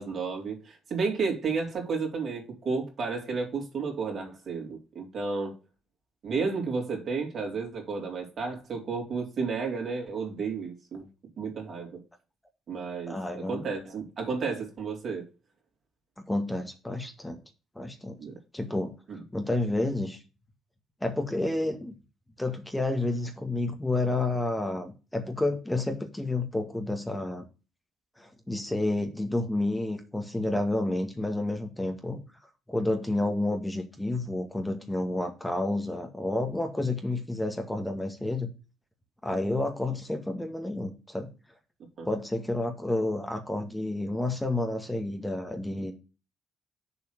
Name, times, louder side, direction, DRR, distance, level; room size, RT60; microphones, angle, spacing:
voice 1, 0.0-5.6 6.2-11.1 11.4-12.0 12.7-15.3 18.2-18.3 19.1-19.2 42.0-42.1, right 4 dB, 55° right, 3.6 m, -32 dB
voice 2, 13.1-13.7 16.2-17.4 17.8-18.2 18.5-18.9 19.3-20.2 21.0-22.0 22.4-27.4 28.2-32.2 32.7-38.5 39.2-41.3 42.1-46.0, left 2 dB, 10° left, 1.8 m, -30 dB
7.1 x 4.1 x 6.6 m
supercardioid pair, 55°, 0 cm